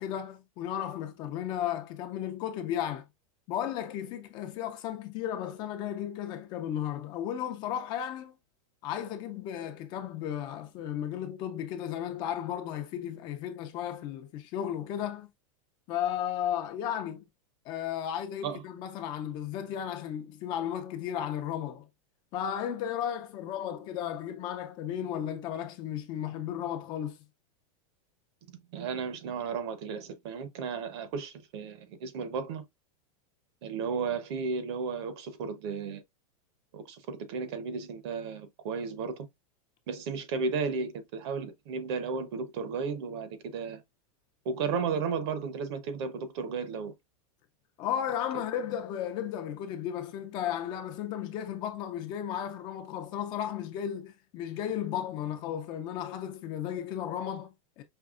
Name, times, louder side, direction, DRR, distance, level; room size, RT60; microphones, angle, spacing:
voice 1, 0.0-3.0 3.5-8.4 8.8-15.3 15.9-17.2 17.7-21.9 22.3-27.2 47.8-57.8, left 10 dB, 25° left, 0.4 m, -34 dB
voice 2, 28.5-32.6 33.6-36.0 36.7-39.3 39.9-43.8 44.4-46.9, right 5 dB, 50° right, 0.8 m, -34 dB
5.4 x 2.8 x 2.4 m
supercardioid pair, 170°, 18 cm